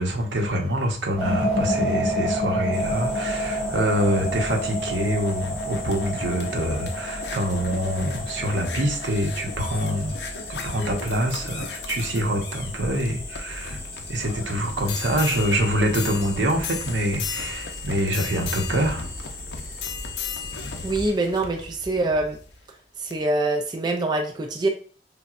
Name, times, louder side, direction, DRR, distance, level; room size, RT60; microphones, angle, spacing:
voice 1, 0.0-10.2 10.5-13.8 14.1-19.1, equal, 85° right, 0.9 m, -25 dB
sound 1, 1.2-12.9, equal, 5° right, 1.2 m, -30 dB
sound 2, 2.7-21.1, left 2 dB, 25° left, 1.6 m, -38 dB
sound 3, 4.9-22.5 23.1-23.2, left 5 dB, 70° left, 0.6 m, -36 dB
voice 2, 20.8-22.4 23.0-24.7, right 2 dB, 25° right, 0.4 m, -24 dB
5.8 x 2.2 x 2.4 m
head